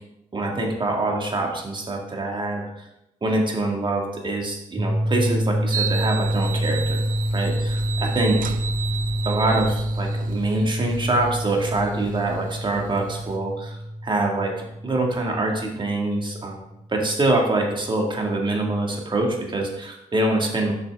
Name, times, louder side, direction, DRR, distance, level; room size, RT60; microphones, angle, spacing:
voice 1, 0.3-2.9 3.2-7.0 7.3-8.6 9.3-13.8 14.0-20.7, right 2 dB, 30° right, 0 dB, 1.9 m, -25 dB
sound 1, 4.8-16.6, equal, 10° right, 0.3 m, -27 dB
sound 2, 5.7-13.4, right 8 dB, 60° right, 0.6 m, -34 dB
7.3 x 5.8 x 3.6 m, 0.86 s
supercardioid pair, 70°, 16 cm